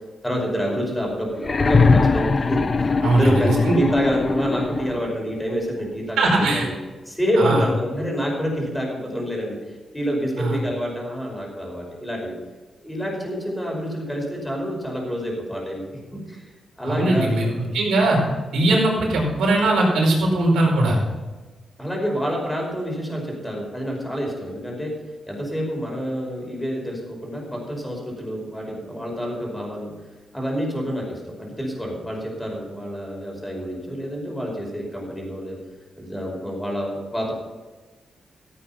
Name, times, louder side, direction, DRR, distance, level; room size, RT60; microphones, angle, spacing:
voice 1, 0.2-6.7 7.1-9.6 9.9-12.3 12.8-16.4 16.8-17.7 21.8-24.9 25.3-29.9 30.3-35.6 36.0-37.3, equal, 5° left, -1 dB, 5.2 m, -27 dB
sound 1, 1.4-5.2 6.4-6.5, left 4 dB, 40° left, 0.7 m, -21 dB
voice 2, 3.0-3.7 6.2-6.7 7.4-7.6 10.4-10.6 16.8-17.4 17.7-18.2 18.5-21.0, right 2 dB, 90° right, -2 dB, 4.9 m, -19 dB
15.0 x 8.7 x 5.8 m, 1.3 s
cardioid pair, 85°, 0 cm